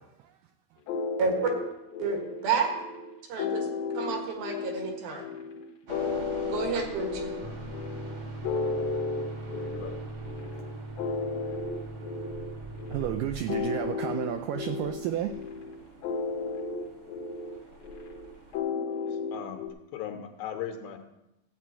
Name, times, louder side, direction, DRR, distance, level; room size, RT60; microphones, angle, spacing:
sound 1, 0.9-19.7, left 4 dB, 60° left, 1.9 m, -34 dB
voice 1, 1.2-1.5 2.0-2.7 3.3-3.7 3.9-5.3 6.5-7.3, right 5 dB, 70° right, 3 dB, 3.4 m, -30 dB
sound 2, 5.9-18.6, right 2 dB, 50° right, 1.7 m, -46 dB
sound 3, 7.4-13.5, right 2 dB, 15° left, 0.9 m, -41 dB
voice 2, 9.5-10.0 19.1-19.6 19.9-21.0, left 9 dB, 80° left, 5 dB, 2.8 m, -38 dB
voice 3, 12.9-15.4, right 11 dB, 85° right, 7 dB, 1.9 m, -31 dB
14.5 x 8.4 x 4.5 m, 0.89 s
omnidirectional pair, 4.4 m